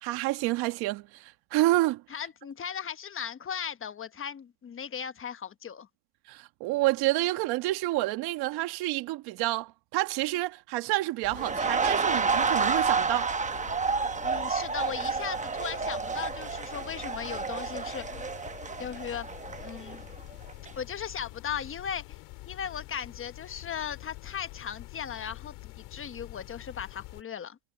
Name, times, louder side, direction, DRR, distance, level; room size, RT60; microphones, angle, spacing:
voice 1, 0.0-2.0 6.3-13.3, right 18 dB, 85° right, 1.6 m, -28 dB
voice 2, 2.1-5.9 14.2-18.3 18.8-19.3 19.6-20.0 20.8-27.6, left 8 dB, 35° left, 1.1 m, -37 dB
sound 1, 11.2-27.2, left 22 dB, 90° left, 4.4 m, -46 dB
sound 2, 11.3-20.2 20.5-20.7, right 5 dB, 20° right, 1.1 m, -30 dB
cardioid pair, 105°, 37 cm